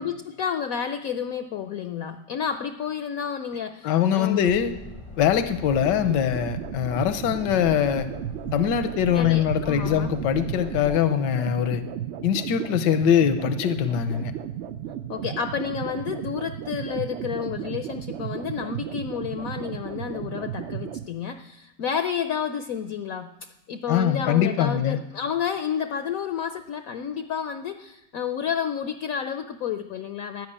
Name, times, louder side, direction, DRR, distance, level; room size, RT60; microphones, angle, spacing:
voice 1, 0.0-4.5 9.1-10.1 15.1-30.5, left 7 dB, 65° left, 9 dB, 0.9 m, -30 dB
voice 2, 3.8-4.7 5.2-8.1 8.5-11.9 12.2-14.3 23.9-25.0, left 9 dB, 80° left, 10 dB, 1.5 m, -22 dB
sound 1, 4.5-11.0, left 3 dB, 30° left, 0.6 m, -42 dB
sound 2, 5.8-21.1, right 11 dB, 75° right, 0.6 m, -34 dB
13.0 x 10.5 x 8.6 m, 0.93 s
omnidirectional pair, 1.9 m